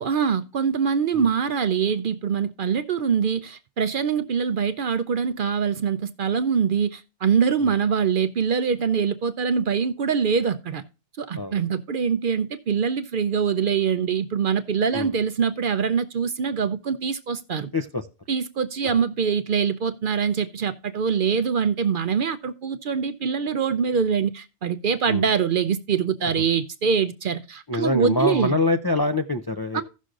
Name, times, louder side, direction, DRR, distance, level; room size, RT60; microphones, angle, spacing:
voice 1, 0.0-10.8 11.2-17.7 18.3-28.5 29.7-29.8, right 6 dB, 55° right, 0.7 m, -24 dB
voice 2, 17.7-18.1 18.8-19.0 25.1-25.2 26.2-26.3 27.7-29.8, left 2 dB, 30° left, 0.4 m, -25 dB
16.0 x 6.3 x 2.4 m
omnidirectional pair, 1.2 m